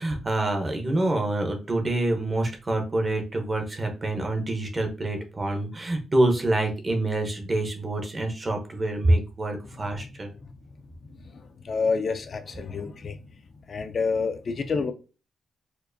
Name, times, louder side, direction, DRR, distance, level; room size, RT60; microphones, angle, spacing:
voice 1, 0.0-10.3, right 1 dB, 25° right, 3 dB, 0.7 m, -26 dB
voice 2, 11.6-13.2 13.7-14.9, left 4 dB, 40° left, 8 dB, 0.3 m, -28 dB
4.4 x 2.5 x 2.5 m, 0.32 s
cardioid pair, 145°, 0 cm